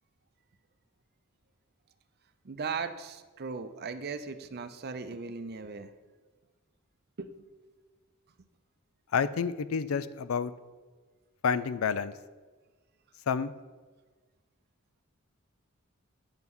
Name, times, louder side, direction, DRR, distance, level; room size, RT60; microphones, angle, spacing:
voice 1, 2.4-5.9 7.2-7.4, right 5 dB, 50° right, 9 dB, 0.6 m, -38 dB
voice 2, 9.1-10.5 11.4-12.1 13.3-13.5, left 6 dB, 80° left, 15 dB, 0.4 m, -29 dB
8.8 x 5.6 x 6.1 m, 1.4 s
head